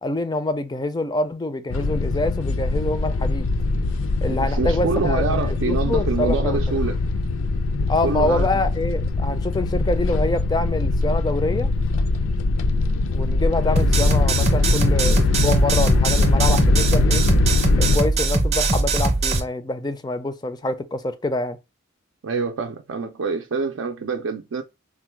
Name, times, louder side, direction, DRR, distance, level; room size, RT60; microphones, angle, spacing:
voice 1, 0.0-3.5 4.2-6.8 7.9-11.7 13.1-17.2 17.8-21.6, left 2 dB, 20° left, 0.4 m, -26 dB
sound 1, 1.7-18.0, left 3 dB, 80° left, 0.5 m, -22 dB
voice 2, 4.3-6.9 8.0-8.5 22.2-24.6, right 4 dB, 75° right, 0.4 m, -26 dB
sound 2, 13.8-19.4, right 2 dB, 30° right, 0.6 m, -21 dB
3.5 x 2.2 x 4.4 m
head